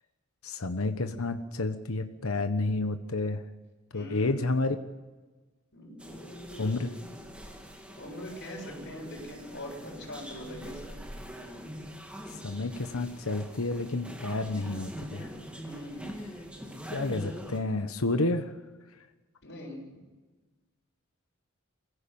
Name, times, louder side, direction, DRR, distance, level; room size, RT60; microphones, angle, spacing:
voice 1, 0.4-3.4 3.9-4.8 6.6-6.9 12.4-15.3 16.9-18.5, left 2 dB, 70° left, 8 dB, 1.2 m, -30 dB
voice 2, 3.9-4.6 5.7-7.1 8.0-11.0 15.6-16.1 19.4-20.1, left 1 dB, 55° left, -2 dB, 7.4 m, -43 dB
sound 1, 6.0-17.6, equal, 5° right, 2.8 m, -44 dB
23.5 x 16.0 x 8.7 m, 1.3 s
head